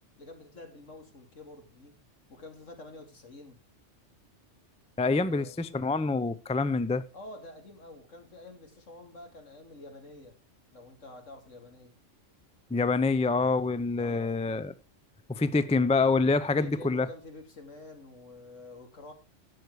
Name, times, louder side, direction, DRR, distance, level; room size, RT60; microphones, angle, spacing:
voice 1, 0.2-2.0 2.3-3.6 5.2-5.6 7.1-10.4 10.7-12.0 14.0-14.4 16.6-19.1, left 2 dB, 80° left, 2.8 m, -48 dB
voice 2, 5.0-7.0 12.7-14.7 15.3-17.1, left 3 dB, 10° left, 0.3 m, -26 dB
12.0 x 8.0 x 4.7 m
omnidirectional pair, 1.3 m